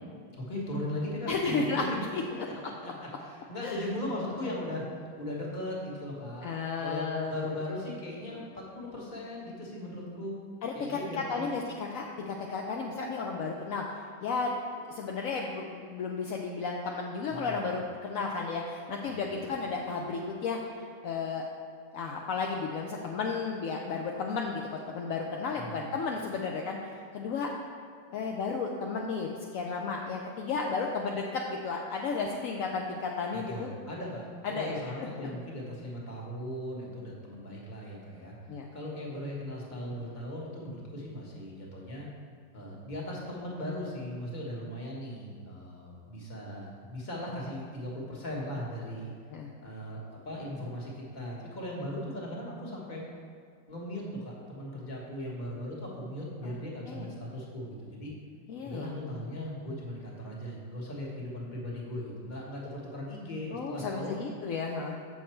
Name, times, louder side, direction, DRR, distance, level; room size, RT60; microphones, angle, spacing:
voice 1, 0.3-1.9 2.6-4.8 5.2-6.5 6.8-10.4 10.7-11.5 17.3-17.6 19.1-19.5 25.5-25.9 33.3-38.3 38.7-42.1 42.5-49.1 49.6-50.0 50.2-53.0 53.7-58.1 58.6-64.2, left 1 dB, 25° left, -4 dB, 1.4 m, -38 dB
voice 2, 1.3-1.8 2.1-2.2 3.6-3.8 6.4-7.3 10.6-11.6 11.9-13.8 14.2-21.5 21.9-24.6 24.9-27.5 28.1-33.7 34.4-35.1 38.5-38.7 49.3-49.5 56.4-56.6 56.9-57.1 58.5-58.9 63.5-65.0, left 4 dB, 70° left, 0 dB, 0.8 m, -33 dB
7.2 x 6.5 x 4.4 m, 2.3 s
omnidirectional pair, 2.0 m